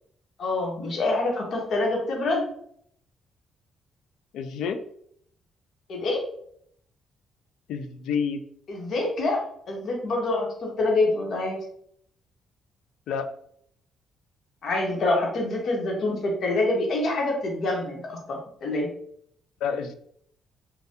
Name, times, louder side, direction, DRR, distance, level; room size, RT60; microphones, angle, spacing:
voice 1, 0.4-2.4 5.9-6.2 8.7-11.6 14.6-18.9, left 2 dB, 60° left, 0 dB, 1.0 m, -26 dB
voice 2, 4.3-4.8 7.7-8.4 13.1-13.3 19.6-19.9, left 6 dB, 85° left, 8 dB, 0.3 m, -28 dB
2.6 x 2.2 x 3.5 m, 0.67 s
cardioid pair, 90°, 0 cm